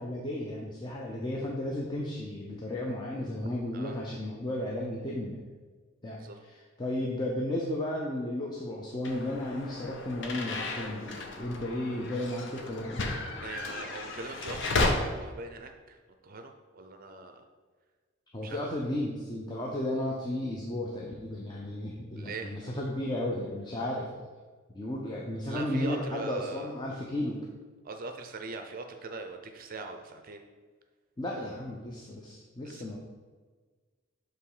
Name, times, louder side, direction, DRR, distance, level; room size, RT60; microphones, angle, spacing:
voice 1, 0.0-5.4 6.0-13.0 18.3-24.1 24.7-27.4 31.2-33.0, left 1 dB, 20° left, -3 dB, 0.6 m, -34 dB
sound 1, 9.0-14.9, left 3 dB, 60° left, 0.7 m, -34 dB
voice 2, 13.4-16.0 16.2-17.4 18.4-18.6 22.2-22.5 25.5-26.7 27.8-30.4 32.6-33.0, right 3 dB, 45° right, 6 dB, 0.5 m, -41 dB
7.0 x 3.0 x 4.9 m, 1.4 s
head